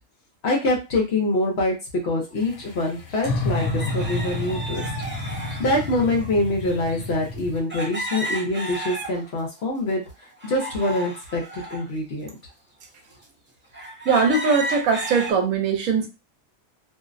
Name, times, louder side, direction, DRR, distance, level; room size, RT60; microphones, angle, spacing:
voice 1, 0.4-1.7 2.0-4.8 5.4-10.0 10.4-12.3, left 2 dB, 60° left, 0 dB, 0.8 m, -25 dB
sound 1, 2.4-7.6, left 2 dB, 80° left, 1.0 m, -30 dB
sound 2, 2.4-2.5 3.5-6.3 7.7-9.5 9.9-11.8 12.5-12.6 13.2-13.3 13.7-15.3, right 1 dB, 15° right, 0.5 m, -33 dB
voice 2, 14.0-16.1, right 5 dB, 70° right, 4 dB, 1.0 m, -21 dB
2.5 x 2.0 x 2.4 m, 0.28 s
omnidirectional pair, 1.5 m